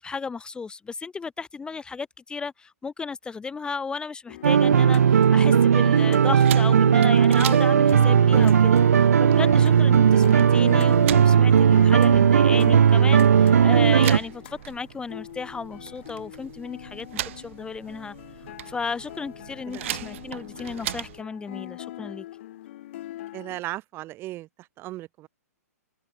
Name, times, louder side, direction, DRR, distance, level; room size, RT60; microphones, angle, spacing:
voice 1, 0.0-17.1 17.4-18.1 18.7-22.2, left 5 dB, 10° left, 1.0 m, -34 dB
sound 1, 4.3-23.6, left 14 dB, 50° left, 2.5 m, -43 dB
sound 2, 4.4-14.2, right 7 dB, 65° right, 0.7 m, -17 dB
sound 3, 6.4-21.2, right 14 dB, 50° right, 6.2 m, -39 dB
voice 2, 23.3-24.5 24.8-25.3, right 16 dB, 25° right, 1.5 m, -36 dB
figure-of-eight pair, 115°, 9 cm